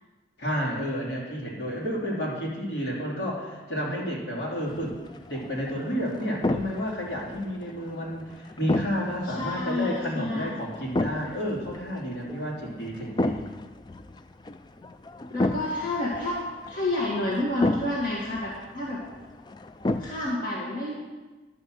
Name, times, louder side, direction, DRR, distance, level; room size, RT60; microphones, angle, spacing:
voice 1, 0.4-5.0 5.3-13.4, equal, 70° left, -4 dB, 3.0 m, -31 dB
sound 1, 4.7-20.3, left 2 dB, 25° left, 0.3 m, -34 dB
voice 2, 9.4-10.5 15.3-16.4 16.7-19.0 20.0-21.0, left 2 dB, 45° left, -6 dB, 1.8 m, -29 dB
11.0 x 5.6 x 7.7 m, 1.2 s
head